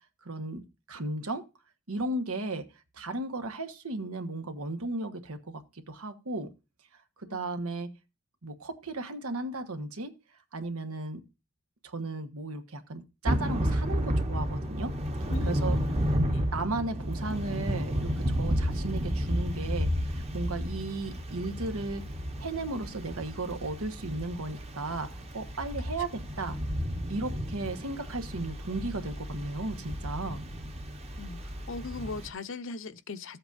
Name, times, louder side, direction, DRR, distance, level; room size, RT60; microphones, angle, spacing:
voice 1, 0.2-1.5 1.9-2.7 2.9-6.5 7.2-7.9 8.4-10.1 10.5-11.2 11.8-14.9 15.4-15.8 16.5-22.1 22.4-26.6 27.1-30.5, right 2 dB, 90° right, 1.3 m, -35 dB
Thunder / Rain, 13.2-32.3, equal, 30° right, 1.0 m, -32 dB
voice 2, 15.3-15.9 16.3-16.5 31.2-33.4, left 3 dB, 60° left, 0.7 m, -39 dB
14.5 x 8.0 x 2.6 m
head